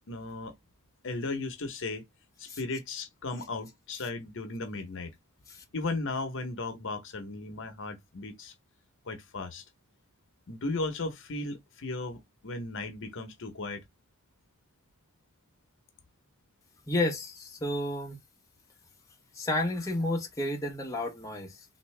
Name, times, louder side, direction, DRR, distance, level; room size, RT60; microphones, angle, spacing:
voice 1, 0.1-0.5 1.0-2.0 2.4-5.1 5.7-8.5 9.1-9.6 10.5-13.8, left 3 dB, 60° left, 0.8 m, -36 dB
voice 2, 16.9-18.2 19.3-21.6, left 1 dB, 15° left, 0.8 m, -31 dB
3.5 x 2.6 x 3.2 m
head